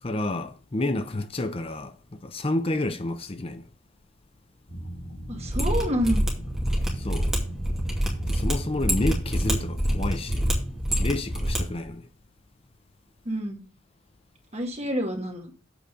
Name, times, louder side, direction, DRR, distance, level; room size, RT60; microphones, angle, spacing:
voice 1, 0.0-3.7 6.9-7.3 8.3-10.5 10.9-12.1, left 2 dB, 30° left, 0.6 m, -30 dB
sound 1, 4.7-10.8, right 1 dB, 70° left, 2.0 m, -37 dB
voice 2, 5.3-6.2 13.2-13.6 14.5-15.5, equal, 35° right, 1.6 m, -28 dB
Mechanisms, 5.5-11.6 11.8-11.9, equal, 5° right, 2.3 m, -26 dB
7.9 x 4.9 x 6.8 m
head